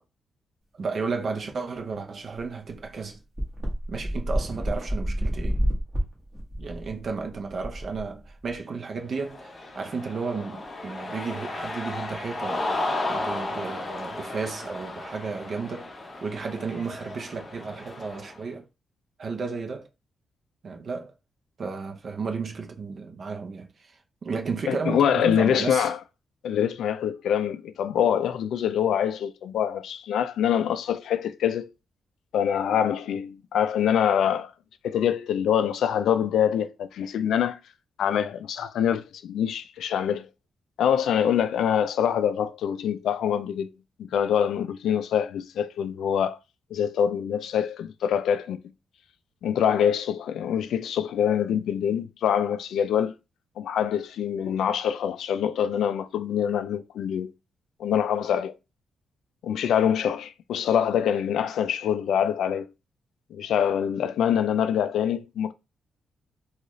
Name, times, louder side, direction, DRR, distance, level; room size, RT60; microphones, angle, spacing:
voice 1, 0.8-3.2 3.9-5.6 6.6-12.7 13.0-15.9 16.2-18.6 19.2-19.9 20.6-21.1 21.6-25.9, right 4 dB, 40° right, 0.6 m, -33 dB
sound 1, 2.3-2.4 2.7-2.8 3.4-8.5, equal, 20° right, 1.4 m, -29 dB
Cheering, 9.1-18.4, left 2 dB, 25° left, 0.6 m, -34 dB
voice 2, 24.7-26.0 26.4-31.7 32.3-34.5 34.8-37.6 38.0-40.3 40.8-43.7 44.0-46.4 46.7-48.6 49.4-53.1 53.6-57.3 57.8-58.5 59.4-62.7 63.3-65.5, left 9 dB, 85° left, 0.3 m, -25 dB
3.8 x 2.3 x 3.1 m
wide cardioid pair, 165°, 0 cm